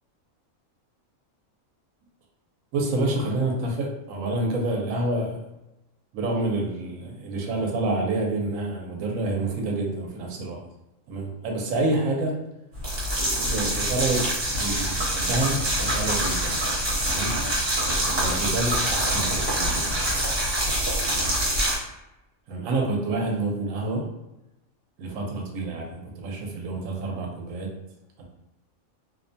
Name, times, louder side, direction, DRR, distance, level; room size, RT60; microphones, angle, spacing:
voice 1, 2.7-5.4 6.1-10.6 11.1-12.4 13.5-14.3 14.5-16.6 17.0-17.4 18.1-20.0 22.5-24.1 25.0-27.7 28.2-28.3, right 2 dB, 85° right, 0 dB, 1.0 m, -28 dB
sound 1, 12.7-21.8, right 1 dB, 50° right, 1.0 m, -25 dB
2.7 x 2.1 x 2.6 m, 0.94 s
omnidirectional pair, 1.4 m